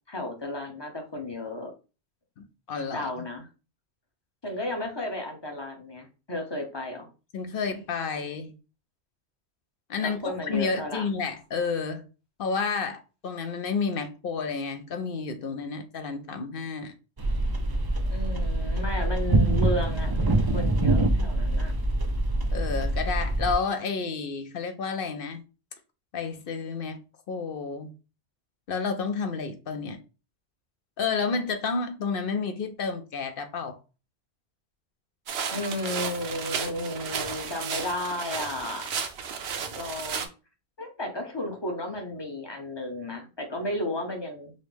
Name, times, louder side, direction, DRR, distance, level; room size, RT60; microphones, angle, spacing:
voice 1, 0.1-1.7 2.9-3.5 4.4-7.1 10.0-11.1 18.1-21.7 35.5-38.9 39.7-40.2 40.8-44.5, left 1 dB, 25° left, 0.8 m, -33 dB
voice 2, 2.4-3.2 7.3-8.5 9.9-12.1 12.4-16.9 22.5-25.4 26.1-27.0 27.3-27.9 28.7-30.0 31.0-33.8, left 5 dB, 60° left, 0.7 m, -30 dB
sound 1, 17.2-23.5, right 2 dB, 40° right, 0.3 m, -25 dB
sound 2, 35.3-40.3, right 7 dB, 65° right, 0.8 m, -33 dB
5.2 x 2.0 x 3.3 m
omnidirectional pair, 1.1 m